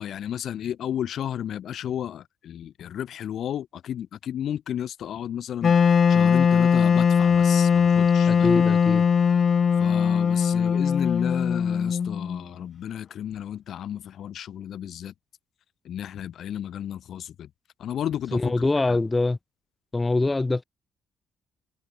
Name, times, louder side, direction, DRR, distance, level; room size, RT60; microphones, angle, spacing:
voice 1, 0.0-8.6 9.8-15.1 15.8-17.5 17.8-18.5 18.9-19.0, left 10 dB, 70° left, 1.7 m, -33 dB
Wind instrument woodwind instrument, 5.6-12.6, left 6 dB, 45° left, 0.6 m, -20 dB
voice 2, 8.3-9.0 18.3-19.4 19.9-20.6, left 2 dB, 20° left, 3.0 m, -24 dB
cardioid pair, 90°, 0 cm